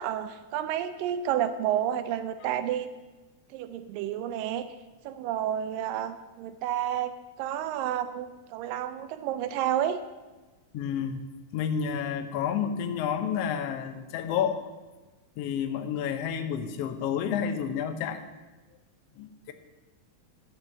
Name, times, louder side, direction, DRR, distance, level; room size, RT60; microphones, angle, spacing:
voice 1, 0.0-2.9 3.5-4.7 5.1-7.1 7.4-10.0, right 10 dB, 85° right, 11 dB, 2.2 m, -30 dB
voice 2, 10.7-11.2 11.5-14.6 15.4-18.2 19.2-19.5, left 8 dB, 85° left, 7 dB, 1.4 m, -30 dB
10.5 x 6.3 x 7.1 m, 1.2 s
omnidirectional pair, 3.9 m